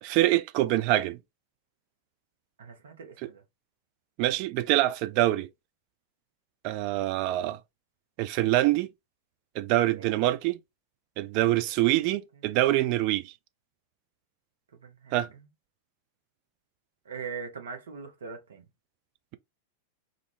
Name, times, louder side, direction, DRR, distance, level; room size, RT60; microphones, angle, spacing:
voice 1, 0.0-1.2 3.2-3.3 4.2-5.5 6.6-7.6 8.2-8.9 9.6-10.6 11.2-13.2 15.1-15.3, right 15 dB, 45° right, 0.3 m, -25 dB
voice 2, 2.6-3.4 9.9-10.6 14.8-15.5 17.1-18.6, right 5 dB, 65° right, 0.7 m, -42 dB
2.4 x 2.1 x 3.1 m
figure-of-eight pair, 90°, 0 cm